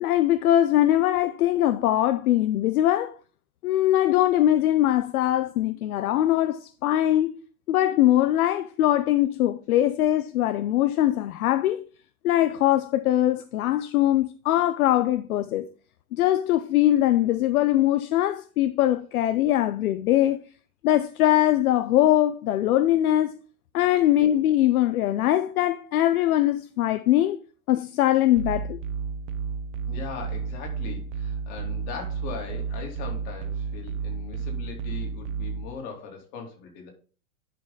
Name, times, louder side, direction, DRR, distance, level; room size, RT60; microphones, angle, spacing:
voice 1, 0.0-3.1 3.6-7.3 7.7-11.8 12.2-15.7 16.1-20.4 20.8-23.3 23.7-27.4 27.7-28.8, left 13 dB, 70° left, 0.7 m, -22 dB
sound 1, 28.4-35.7, right 5 dB, 55° right, 1.3 m, -32 dB
voice 2, 29.9-36.9, left 5 dB, 40° left, 3.2 m, -39 dB
10.5 x 5.1 x 3.9 m
hypercardioid pair, 135°, 45 cm